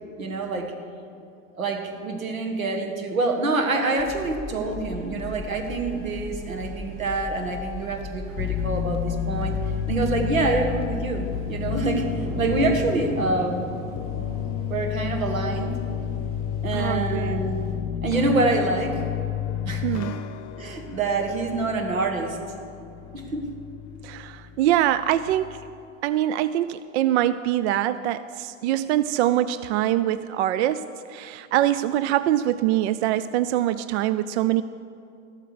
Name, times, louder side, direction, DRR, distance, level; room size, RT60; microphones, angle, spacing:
voice 1, 0.2-0.7 1.5-9.5 9.9-12.1 12.4-13.7 14.7-15.8 16.6-17.6 18.0-19.0 19.6-20.0 20.6-22.4 23.1-23.5, right 2 dB, 85° right, 5 dB, 1.6 m, -26 dB
sound 1, 4.0-10.9, left 1 dB, 15° right, 1.9 m, -38 dB
sound 2, 5.0-5.1 5.5-6.8 7.0-17.7, equal, 35° right, 3.8 m, -39 dB
sound 3, 8.4-25.8, left 9 dB, 45° left, 0.9 m, -31 dB
voice 2, 16.7-17.5 19.8-20.2 24.0-25.6 26.0-34.6, right 13 dB, 55° right, 14 dB, 0.4 m, -24 dB
13.5 x 12.5 x 4.8 m, 2.6 s
hypercardioid pair, 90°, 40 cm